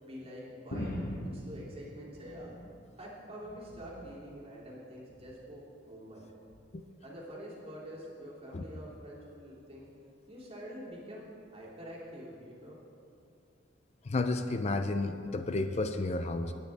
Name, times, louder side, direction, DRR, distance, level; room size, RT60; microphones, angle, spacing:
voice 1, 0.0-1.0 1.3-2.5 3.0-6.2 7.0-9.9 10.3-12.8, equal, 30° right, -6 dB, 2.8 m, -46 dB
sound 1, 0.7-2.9 3.3-4.2 5.1-5.5 6.5-6.6, left 1 dB, 55° left, 1.1 m, -41 dB
voice 2, 14.0-16.5, left 2 dB, 35° left, 8 dB, 0.5 m, -31 dB
18.0 x 9.4 x 3.5 m, 2.6 s
head